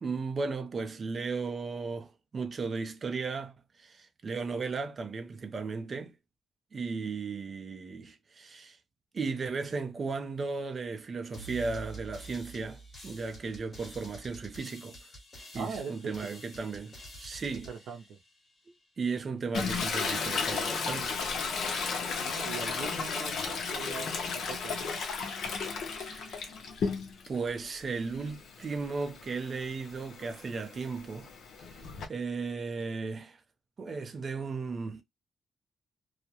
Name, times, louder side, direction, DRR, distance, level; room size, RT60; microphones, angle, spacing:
voice 1, 0.0-6.2 6.7-8.8 9.1-15.0 15.5-17.7 19.0-21.2 25.8-26.5 27.3-31.3 31.6-31.8 32.1-33.4 33.8-35.0, right 4 dB, 35° right, 0.5 m, -35 dB
sound 1, 11.3-18.8, right 2 dB, 25° left, 1.2 m, -48 dB
voice 2, 15.5-16.4 17.6-18.2 22.2-25.0, right 6 dB, 90° right, 0.5 m, -41 dB
Toilet flush, 19.5-27.4 27.8-32.1, left 5 dB, 65° left, 0.6 m, -34 dB
2.3 x 2.0 x 2.8 m
cardioid pair, 145°, 0 cm